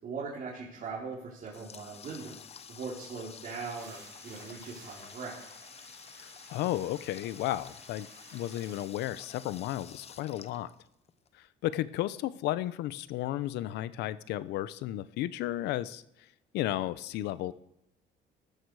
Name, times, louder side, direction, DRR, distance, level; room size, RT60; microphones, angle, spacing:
voice 1, 0.0-2.4 2.7-5.4, right 4 dB, 50° right, -4 dB, 3.9 m, -40 dB
Water tap faucet, 1.1-11.3, left 7 dB, 40° left, 1.0 m, -50 dB
sound 1, 3.6-8.9, right 7 dB, 85° right, 2.8 m, -56 dB
voice 2, 6.2-10.7 11.4-16.0 16.5-17.5, left 14 dB, 85° left, 16 dB, 0.8 m, -33 dB
17.5 x 13.0 x 4.8 m, 0.82 s
cardioid pair, 110°, 17 cm